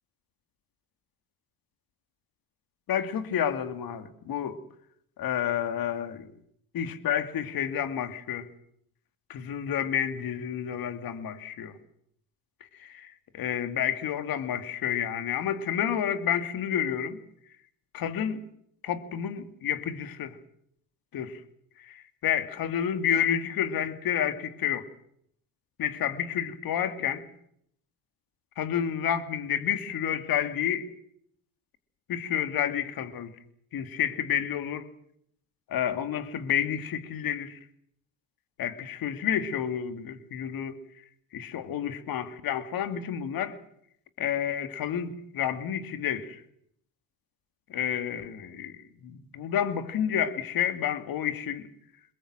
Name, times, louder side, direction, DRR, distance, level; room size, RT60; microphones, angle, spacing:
voice 1, 2.9-4.6 5.2-6.3 6.7-8.5 9.3-11.7 12.8-17.2 17.9-18.4 18.8-20.4 21.1-21.4 21.8-24.9 25.8-27.2 28.6-30.9 32.1-33.3 33.7-34.9 35.7-37.6 38.6-40.8 41.3-43.6 44.2-46.4 47.7-51.7, left 9 dB, 65° left, 11 dB, 2.4 m, -30 dB
22.0 x 21.5 x 7.6 m, 0.71 s
supercardioid pair, 65°, 39 cm